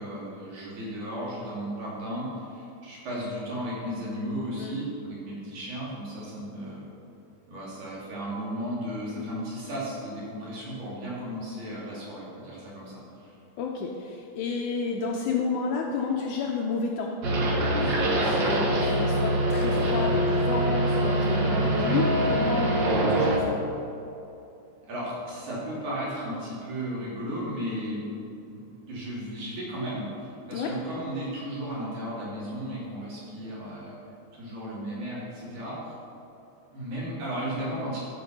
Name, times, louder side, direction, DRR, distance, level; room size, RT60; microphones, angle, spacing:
voice 1, 0.0-6.9 7.5-13.3 24.9-28.1 28.5-34.0 34.3-36.0 36.7-38.0, equal, 60° right, -7 dB, 4.1 m, -35 dB
voice 2, 13.6-17.1 17.8-23.5 30.5-30.8, left 5 dB, 80° left, 0 dB, 1.9 m, -31 dB
sound 1, 17.2-23.4, right 1 dB, 75° right, 1.0 m, -24 dB
13.5 x 6.0 x 5.3 m, 2.8 s
omnidirectional pair, 4.1 m